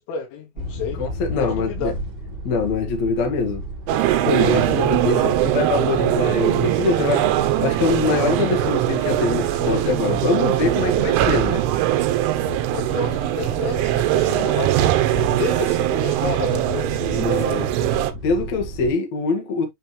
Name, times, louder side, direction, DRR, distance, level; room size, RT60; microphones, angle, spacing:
voice 1, 0.0-2.0 5.1-5.4 12.8-17.3, left 4 dB, 80° left, 4.6 m, -31 dB
sound 1, 0.6-18.9, right 1 dB, 45° right, 1.8 m, -34 dB
voice 2, 1.0-1.9 2.4-3.6 4.2-11.6 17.1-17.7 18.2-19.7, left 4 dB, 55° left, 2.0 m, -23 dB
sound 2, 3.9-18.1, right 13 dB, 80° right, 3.1 m, -21 dB
sound 3, 14.7-15.0 17.2-17.7, right 4 dB, 65° right, 1.1 m, -43 dB
8.9 x 3.4 x 3.1 m
omnidirectional pair, 5.8 m